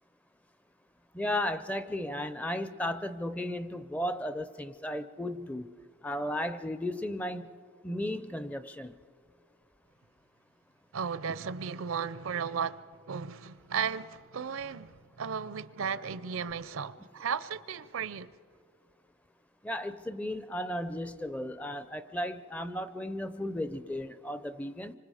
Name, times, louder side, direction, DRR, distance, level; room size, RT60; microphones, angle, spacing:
voice 1, 1.1-5.7 6.0-7.5 7.8-8.9 19.6-24.9, left 1 dB, 5° left, 0.5 m, -35 dB
voice 2, 10.9-12.8 13.1-18.3, right 6 dB, 70° right, 0.5 m, -35 dB
26.5 x 25.5 x 4.9 m
head